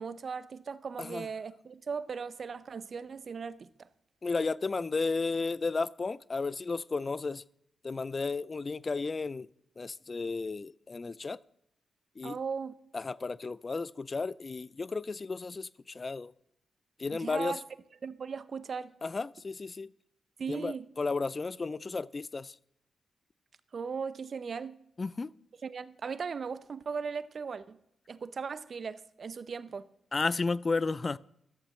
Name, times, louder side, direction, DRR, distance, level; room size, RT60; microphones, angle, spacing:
voice 1, 0.0-3.9 12.2-12.7 17.1-17.6 18.0-18.9 20.4-20.9 23.7-24.8 25.6-27.8 28.1-29.9, right 5 dB, 55° right, 0.7 m, -38 dB
voice 2, 4.2-7.4 7.8-9.5 9.8-11.4 12.2-12.4 12.9-16.3 17.0-17.6 19.0-19.9 20.5-22.5 25.0-25.3 30.1-31.2, left 3 dB, 40° left, 0.4 m, -33 dB
14.0 x 11.5 x 3.2 m
supercardioid pair, 45°, 0 cm